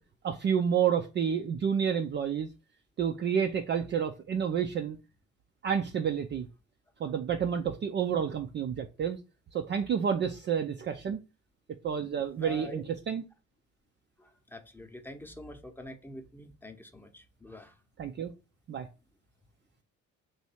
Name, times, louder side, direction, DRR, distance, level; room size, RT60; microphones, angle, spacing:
voice 1, 0.2-2.5 3.0-5.0 5.6-6.5 7.0-9.2 9.5-11.2 11.8-13.2 18.0-18.3 18.7-18.9, right 7 dB, 30° right, 0.4 m, -29 dB
voice 2, 12.4-12.8 14.2-17.8, left 1 dB, 5° left, 0.8 m, -45 dB
3.2 x 2.7 x 4.4 m
hypercardioid pair, 55°, 38 cm